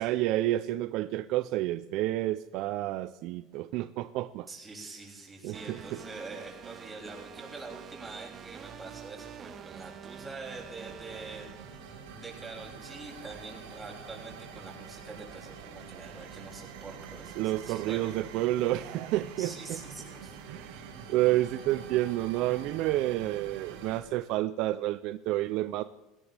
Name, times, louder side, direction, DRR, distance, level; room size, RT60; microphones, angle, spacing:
voice 1, 0.0-4.5 5.4-5.8 17.4-19.8 20.5-25.8, right 15 dB, 65° right, 13 dB, 0.5 m, -30 dB
voice 2, 4.5-18.2 19.4-20.4, right 3 dB, 15° right, -1 dB, 6.9 m, -45 dB
sound 1, 5.5-11.8, right 8 dB, 40° right, 1.5 m, -47 dB
sound 2, 10.0-24.0, right 6 dB, 85° right, 3.5 m, -46 dB
19.5 x 17.5 x 3.4 m, 1.1 s
supercardioid pair, 110°, 0 cm